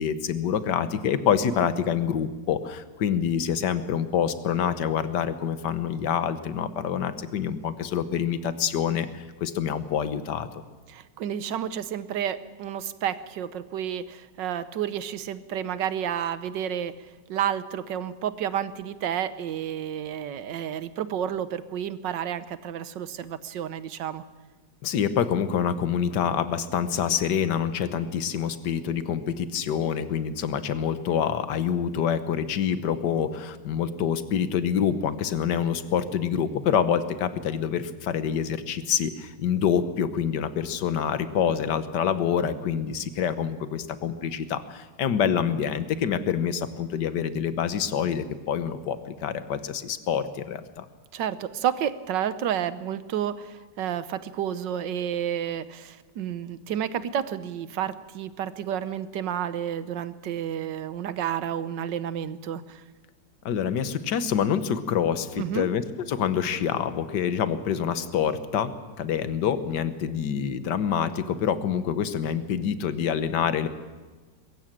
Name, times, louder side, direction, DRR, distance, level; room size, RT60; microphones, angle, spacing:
voice 1, 0.0-10.5 24.8-50.9 63.5-65.8 66.1-73.7, left 8 dB, 75° left, 12 dB, 1.7 m, -26 dB
voice 2, 10.9-16.9 17.3-24.2 51.1-62.8 65.4-65.7, right 9 dB, 85° right, 14 dB, 1.6 m, -30 dB
22.5 x 14.5 x 8.9 m, 1.3 s
omnidirectional pair, 1.9 m